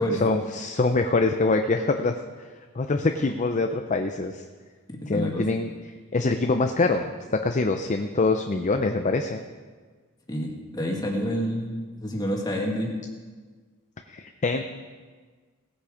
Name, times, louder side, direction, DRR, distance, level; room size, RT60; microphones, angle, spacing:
voice 1, 0.2-2.1 2.8-4.4 5.1-5.7 6.1-7.1 7.4-9.4 14.1-14.6, left 3 dB, 35° left, 5 dB, 0.5 m, -24 dB
voice 2, 5.1-5.5 10.3-13.0, equal, 20° left, -1 dB, 1.9 m, -28 dB
17.5 x 8.5 x 5.0 m, 1.5 s
head